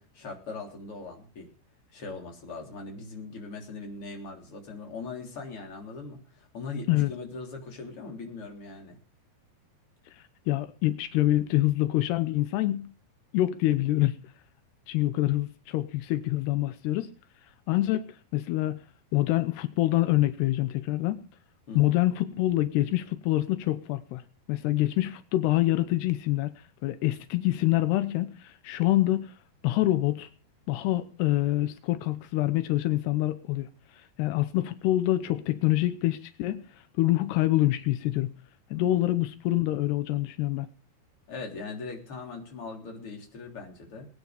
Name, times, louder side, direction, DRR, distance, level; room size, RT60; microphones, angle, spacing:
voice 1, 0.0-1.5 1.9-9.0 21.7-21.9 38.7-39.0 41.3-44.1, left 3 dB, 35° left, 1 dB, 4.0 m, -40 dB
voice 2, 10.5-12.9 13.3-14.2 14.9-17.1 17.7-18.8 19.1-21.2 21.8-24.2 24.5-26.5 26.8-29.3 29.6-30.3 30.7-33.7 34.2-36.6 37.0-38.3 38.7-40.7, left 16 dB, 85° left, 11 dB, 3.0 m, -26 dB
21.5 x 9.6 x 5.1 m, 0.37 s
omnidirectional pair, 4.7 m